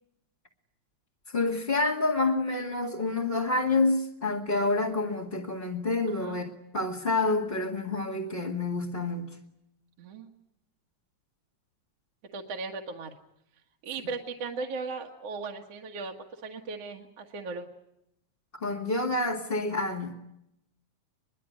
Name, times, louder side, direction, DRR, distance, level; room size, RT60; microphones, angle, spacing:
voice 1, 1.3-9.4 18.5-20.1, left 2 dB, 20° left, -3 dB, 1.8 m, -28 dB
voice 2, 6.1-6.4 10.0-10.3 12.3-13.2 13.8-16.2 16.4-17.7, right 4 dB, 60° right, 0 dB, 2.5 m, -37 dB
23.5 x 22.5 x 9.4 m, 0.84 s
omnidirectional pair, 3.3 m